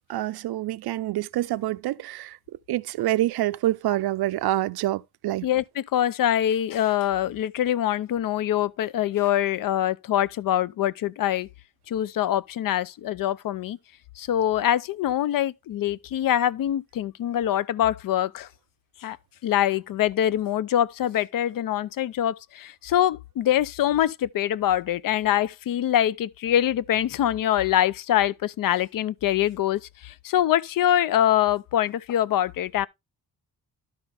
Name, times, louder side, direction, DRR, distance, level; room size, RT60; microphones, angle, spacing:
voice 1, 0.1-5.5, right 15 dB, 75° right, 0.5 m, -27 dB
voice 2, 5.4-11.5 11.9-13.8 14.2-18.5 19.0-19.2 19.4-32.9, left 11 dB, 60° left, 0.5 m, -24 dB
12.0 x 5.6 x 3.4 m
wide cardioid pair, 180°, 38 cm